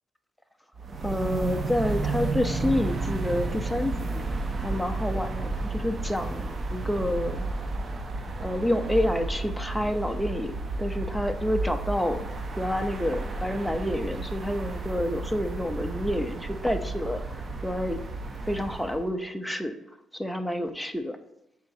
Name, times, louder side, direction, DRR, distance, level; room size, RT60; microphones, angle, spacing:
sound 1, 0.8-19.1, right 2 dB, 40° right, 0.6 m, -32 dB
voice 1, 1.0-4.2 4.6-7.5 8.4-12.3 12.6-18.0 18.5-19.7 20.1-21.2, left 1 dB, ahead, 7 dB, 0.6 m, -29 dB
9.4 x 4.1 x 2.7 m, 0.85 s
cardioid pair, 90°, 0 cm